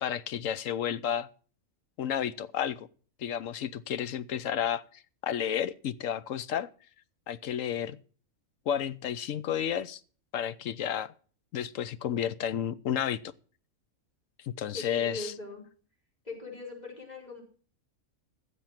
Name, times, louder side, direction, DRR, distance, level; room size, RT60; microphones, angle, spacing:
voice 1, 0.0-1.3 2.0-2.9 3.2-6.7 7.3-8.0 8.7-10.0 10.3-11.1 11.5-13.2 14.4-15.3, left 9 dB, 70° left, 1.1 m, -31 dB
voice 2, 14.7-15.6 16.2-17.4, left 3 dB, 30° left, 5.0 m, -40 dB
15.5 x 7.4 x 5.9 m
omnidirectional pair, 1.5 m